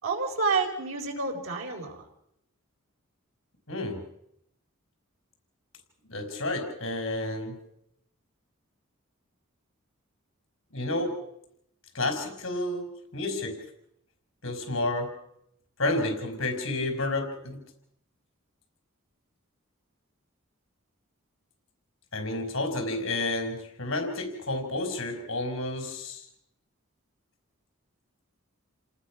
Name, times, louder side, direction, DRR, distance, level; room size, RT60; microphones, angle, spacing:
voice 1, 0.0-2.1, right 4 dB, 85° right, 1 dB, 4.8 m, -29 dB
voice 2, 3.7-4.0 6.1-7.6 10.7-11.2 11.9-13.6 14.4-15.1 15.8-17.6 22.1-26.3, left 2 dB, 70° left, 5 dB, 4.8 m, -30 dB
28.0 x 19.5 x 6.0 m, 0.75 s
head